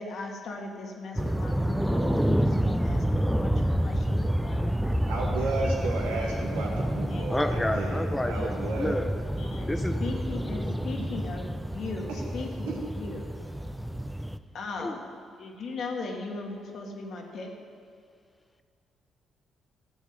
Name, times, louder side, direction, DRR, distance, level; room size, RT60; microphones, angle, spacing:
voice 1, 0.0-5.2 7.1-7.6 9.4-13.3 14.5-15.1 15.4-17.5, left 3 dB, 65° left, 1 dB, 2.1 m, -38 dB
sound 1, 1.2-14.4, equal, 5° right, 0.7 m, -28 dB
voice 2, 5.1-9.0 11.0-11.1 12.7-12.8, right 2 dB, 90° right, -2 dB, 2.1 m, -33 dB
voice 3, 7.3-9.1 9.7-10.0 14.8-15.0, left 1 dB, 15° left, 7 dB, 1.3 m, -30 dB
14.0 x 7.2 x 8.1 m, 2.2 s
hypercardioid pair, 50°, 0 cm